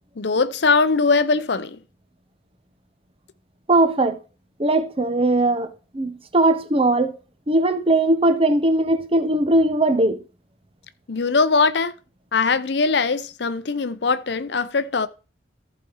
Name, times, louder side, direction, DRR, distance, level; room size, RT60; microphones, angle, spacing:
voice 1, 0.0-1.8 11.1-11.9 12.3-15.1, left 4 dB, 65° left, 0.7 m, -21 dB
voice 2, 3.7-4.2 4.6-7.2 7.5-10.2, right 2 dB, 30° right, 0.9 m, -19 dB
14.5 x 5.1 x 4.7 m
head